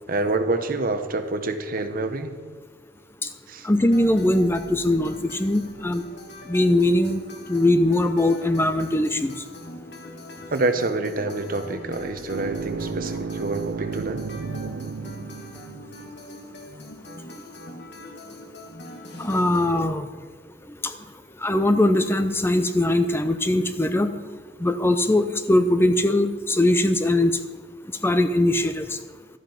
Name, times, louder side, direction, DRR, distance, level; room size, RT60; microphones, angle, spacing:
voice 1, 0.1-2.3 3.5-3.7 10.5-14.3, right 2 dB, 50° right, 8 dB, 0.9 m, -27 dB
voice 2, 3.6-6.0 6.5-7.2 7.5-9.3 19.2-20.1 20.8-20.9 21.4-24.1 24.6-27.3 28.0-28.8, left 1 dB, 15° left, 9 dB, 0.5 m, -21 dB
sound 1, 3.8-19.8, left 1 dB, 65° left, 1.4 m, -42 dB
sound 2, 12.3-16.2, right 5 dB, 80° right, 0.4 m, -33 dB
12.5 x 8.1 x 5.8 m, 1.5 s
head